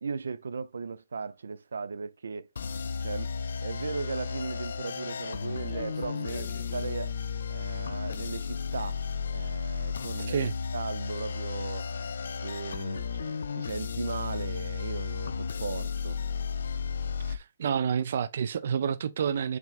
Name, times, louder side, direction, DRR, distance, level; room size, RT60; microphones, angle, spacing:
voice 1, 0.0-2.5 3.0-3.3 3.6-7.1 7.5-9.0 9.3-11.9 12.4-16.2, right 5 dB, 90° right, 0.6 m, -37 dB
sound 1, 2.6-17.4, left 6 dB, 55° left, 0.4 m, -34 dB
Walk footsteps, 4.6-14.1, left 6 dB, 15° left, 0.6 m, -56 dB
voice 2, 17.2-19.6, right 7 dB, 40° right, 0.3 m, -29 dB
6.0 x 3.5 x 2.4 m
hypercardioid pair, 180°, 0 cm